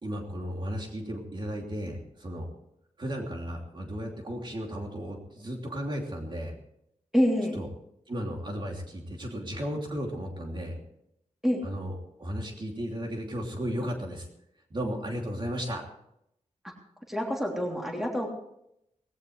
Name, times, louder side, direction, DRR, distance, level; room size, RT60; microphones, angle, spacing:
voice 1, 0.0-2.5 3.0-6.5 7.5-7.7 8.1-10.8 11.6-14.3 14.7-15.8, equal, 40° right, 0 dB, 2.9 m, -34 dB
voice 2, 7.1-7.6 11.4-11.6 16.6-16.7 17.1-18.3, equal, 5° right, 0 dB, 3.1 m, -27 dB
19.0 x 17.0 x 3.3 m, 0.76 s
wide cardioid pair, 160°, 13 cm